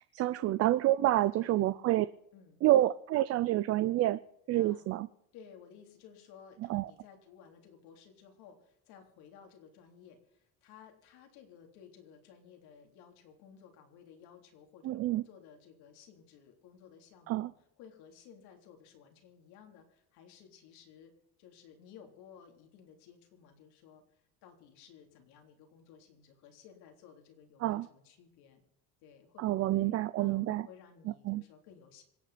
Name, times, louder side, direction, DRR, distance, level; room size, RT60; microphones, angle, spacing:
voice 1, 0.1-2.1 2.6-4.2 4.5-5.1 6.7-6.9 14.8-15.2 17.3-17.5 27.6-27.9 29.4-30.7 31.2-31.4, right 15 dB, 40° right, 14 dB, 0.4 m, -28 dB
voice 2, 1.2-1.9 2.3-2.6 4.5-4.9 5.3-17.5 17.8-21.1 21.4-28.6 29.0-32.0, left 7 dB, 80° left, 3 dB, 3.4 m, -56 dB
26.0 x 9.1 x 4.2 m, 0.77 s
cardioid pair, 175°, 38 cm